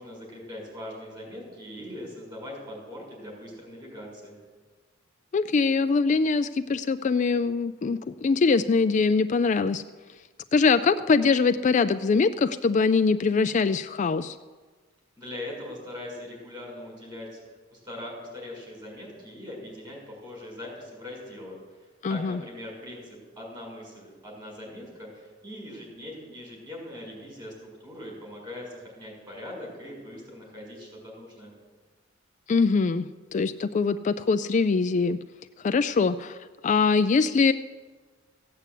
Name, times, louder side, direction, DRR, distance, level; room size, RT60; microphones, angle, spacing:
voice 1, 0.0-4.4 15.2-17.4 17.7-31.5, left 1 dB, 20° right, -2 dB, 6.1 m, -41 dB
voice 2, 5.3-9.8 10.5-14.4 22.0-22.4 32.5-35.2 35.6-36.4 36.6-37.5, left 4 dB, 40° left, 11 dB, 0.4 m, -23 dB
16.0 x 8.3 x 8.2 m, 1.4 s
head